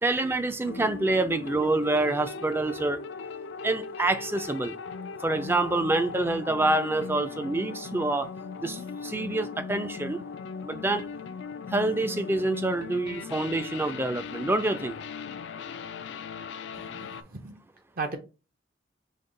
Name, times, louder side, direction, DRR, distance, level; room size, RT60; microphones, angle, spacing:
voice 1, 0.0-3.0 3.6-4.8 5.2-8.3 8.6-10.2 10.6-11.0 11.7-15.0, right 2 dB, 10° right, 0.4 m, -27 dB
sound 1, 0.6-17.2, left 5 dB, 65° left, 0.4 m, -39 dB
voice 2, 16.7-17.6 18.0-18.2, right 4 dB, 50° right, 0.7 m, -36 dB
5.2 x 2.3 x 3.8 m
head